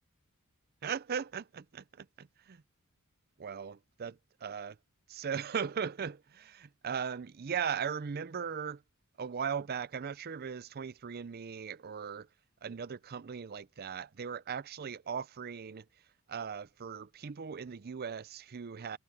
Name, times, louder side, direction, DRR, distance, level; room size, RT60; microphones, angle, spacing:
voice 1, 0.8-2.6 3.4-4.8 5.1-8.8 9.2-12.3 12.6-15.9 16.3-19.0, right 7 dB, 45° right, 0.5 m, -38 dB
head